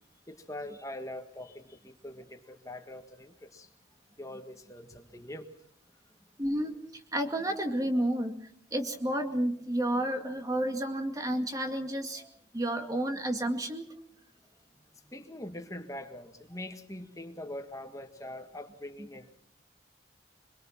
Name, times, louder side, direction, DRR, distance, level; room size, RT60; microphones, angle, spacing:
voice 1, 0.3-3.7 4.2-5.5 15.1-19.3, left 1 dB, 15° left, 5 dB, 1.6 m, -43 dB
voice 2, 6.4-13.9, right 1 dB, 20° right, 5 dB, 2.2 m, -31 dB
25.5 x 22.5 x 5.9 m, 0.65 s
head